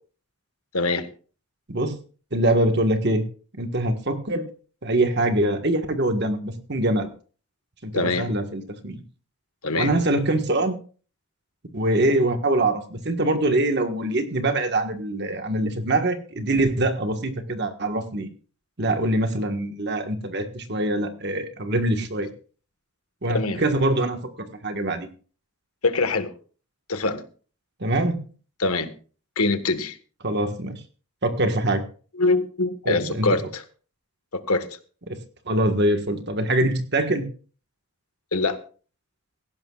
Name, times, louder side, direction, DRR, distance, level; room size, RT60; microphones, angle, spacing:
voice 1, 0.7-1.1 7.9-8.3 9.6-9.9 23.3-23.6 25.8-26.3 26.9-27.2 28.6-28.9 29.4-30.0 32.2-33.6 34.5-34.7 38.3-38.6, left 3 dB, 85° left, 9 dB, 1.5 m, -23 dB
voice 2, 2.3-3.2 3.6-4.5 4.8-7.1 7.8-9.0 9.8-10.8 11.7-18.3 18.8-22.3 23.2-25.1 27.8-28.2 30.2-30.8 31.2-31.8 32.8-33.3 35.1-35.2 35.5-37.2, right 1 dB, 50° right, 7 dB, 1.5 m, -24 dB
17.5 x 15.0 x 2.4 m, 0.40 s
head